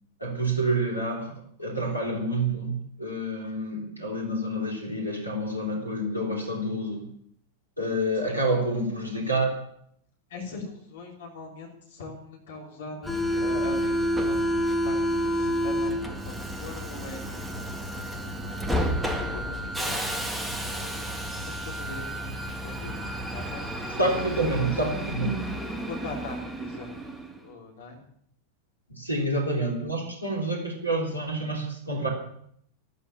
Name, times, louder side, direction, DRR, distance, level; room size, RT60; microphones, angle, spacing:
voice 1, 0.2-7.0 7.8-9.5 24.0-25.3 28.9-32.1, right 1 dB, 90° left, 0 dB, 3.9 m, -28 dB
voice 2, 10.3-20.2 20.7-23.1 23.3-24.0 24.6-25.0 25.6-28.0, left 3 dB, 60° left, 0 dB, 3.5 m, -42 dB
Subway metro underground, 13.0-27.4, equal, 5° right, 2.0 m, -30 dB
13.5 x 13.5 x 7.1 m, 0.68 s
figure-of-eight pair, 90°, 0 cm